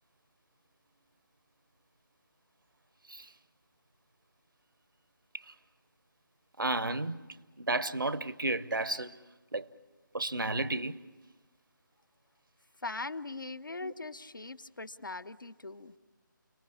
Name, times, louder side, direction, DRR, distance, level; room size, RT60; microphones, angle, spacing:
voice 1, 6.6-7.2 7.6-9.2 9.5-9.7 10.1-11.0 13.8-13.9, right 2 dB, 75° right, 0.9 m, -32 dB
voice 2, 12.8-15.9, left 3 dB, 70° left, 0.8 m, -40 dB
30.0 x 19.0 x 8.5 m
figure-of-eight pair, 155°, 11 cm